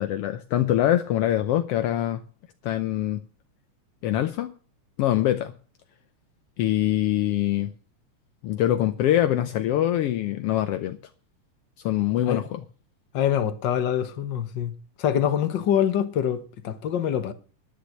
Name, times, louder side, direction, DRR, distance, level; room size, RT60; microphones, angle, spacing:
voice 1, 0.0-2.2 2.6-3.2 4.0-4.5 5.0-5.5 6.6-7.7 8.4-11.0 11.8-12.6, left 12 dB, 80° left, 1.3 m, -24 dB
voice 2, 13.1-14.7 15.0-17.3, left 9 dB, 50° left, 1.4 m, -25 dB
10.5 x 10.0 x 6.4 m
omnidirectional pair, 3.6 m